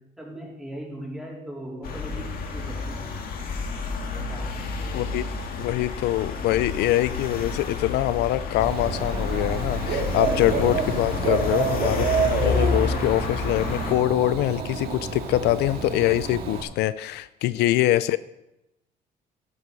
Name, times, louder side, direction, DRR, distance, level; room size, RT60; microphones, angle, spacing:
voice 1, 0.0-3.2 4.1-5.1 10.1-10.4, right 1 dB, ahead, -4 dB, 4.1 m, -39 dB
sound 1, 1.8-13.9, left 4 dB, 60° left, 1.9 m, -30 dB
voice 2, 4.9-5.2 5.6-18.2, left 15 dB, 80° left, 16 dB, 0.5 m, -24 dB
Dog / Bird, 8.6-16.6, right 5 dB, 65° right, 2.3 m, -28 dB
13.0 x 11.5 x 4.1 m, 0.90 s
cardioid pair, 110°, 17 cm